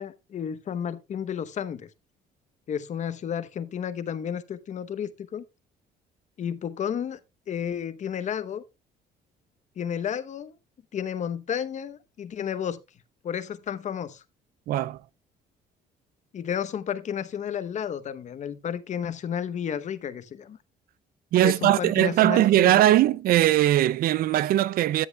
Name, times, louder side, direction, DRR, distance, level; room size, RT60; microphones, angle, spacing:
voice 1, 0.0-1.9 2.7-5.4 6.4-7.2 7.5-8.6 9.8-10.5 10.9-12.8 13.2-14.2 16.3-20.6 21.4-23.0, left 8 dB, 45° left, 0.9 m, -32 dB
voice 2, 14.7-15.0 21.3-25.1, right 13 dB, 60° right, 0.4 m, -20 dB
13.5 x 7.9 x 2.2 m
cardioid pair, 110°, 17 cm